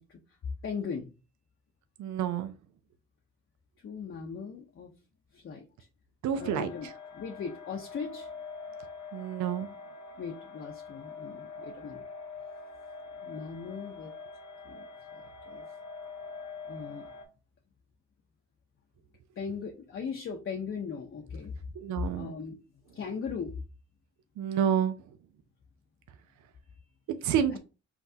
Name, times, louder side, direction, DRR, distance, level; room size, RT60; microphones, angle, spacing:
voice 1, 0.6-1.1 3.8-4.9 5.3-5.7 6.4-6.9 7.1-8.3 10.2-12.0 13.2-14.1 14.6-14.9 15.1-15.7 16.6-17.2 19.4-21.5 22.0-22.6 22.9-23.5 27.2-27.6, left 6 dB, 45° left, 2 dB, 0.7 m, -38 dB
voice 2, 2.0-2.5 6.2-6.7 9.1-9.7 21.8-22.3 24.4-25.0 27.2-27.6, right 9 dB, 70° right, 9 dB, 0.6 m, -28 dB
sound 1, 6.4-17.3, left 4 dB, 75° left, 0.9 m, -44 dB
5.7 x 2.3 x 2.7 m, 0.31 s
cardioid pair, 90°, 30 cm